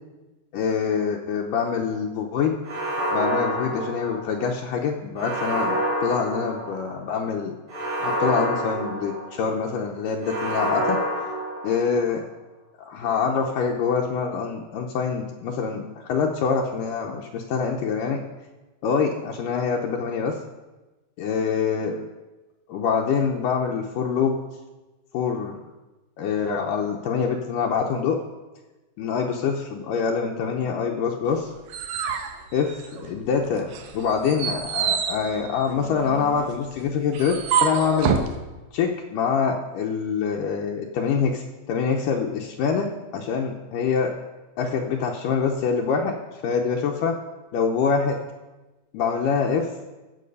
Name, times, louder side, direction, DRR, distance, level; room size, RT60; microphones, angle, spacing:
voice 1, 0.5-2.5 3.1-7.6 8.0-11.0 11.6-12.2 12.8-18.2 18.8-20.4 21.2-22.0 22.7-24.4 25.1-25.6 26.2-28.2 29.0-31.5 32.5-38.2 38.7-42.9 43.1-44.2 44.6-46.2 46.4-47.2 47.5-48.2 48.9-49.7, left 6 dB, 80° left, 1 dB, 2.3 m, -25 dB
sound 1, 2.6-4.5 5.2-7.0 7.7-9.6 10.2-12.1, equal, 35° right, 5.3 m, -28 dB
sound 2, 31.3-33.3 33.7-38.3, right 7 dB, 65° right, 2.0 m, -27 dB
15.0 x 7.1 x 5.4 m, 1.1 s
omnidirectional pair, 4.1 m